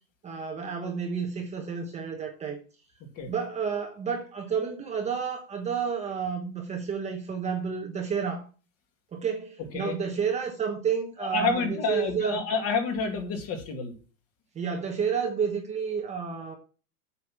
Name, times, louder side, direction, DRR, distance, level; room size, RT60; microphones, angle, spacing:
voice 1, 0.2-2.6 3.3-8.5 9.1-12.4 14.5-16.5, right 6 dB, 15° right, 1.1 m, -30 dB
voice 2, 11.2-13.9, left 4 dB, 30° left, 2.3 m, -29 dB
8.4 x 7.0 x 6.0 m
supercardioid pair, 155°, 46 cm